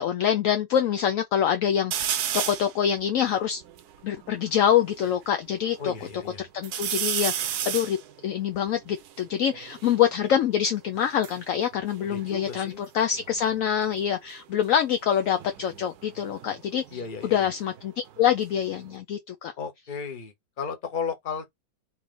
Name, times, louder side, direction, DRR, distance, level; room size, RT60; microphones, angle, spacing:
voice 1, 0.0-3.6 4.0-5.9 6.4-8.0 8.2-19.5, left 9 dB, 70° left, 0.8 m, -25 dB
sound 1, 1.9-2.7 3.3-3.4 3.6-5.1 5.6-6.2 6.6-10.0 10.9-12.9 13.1-13.6 15.2-17.8 18.2-19.0, right 10 dB, 70° right, 1.1 m, -33 dB
voice 2, 5.8-6.4 12.1-12.8 16.9-17.5 19.6-21.4, left 6 dB, 35° left, 1.0 m, -34 dB
4.2 x 3.2 x 3.8 m
omnidirectional pair, 1.9 m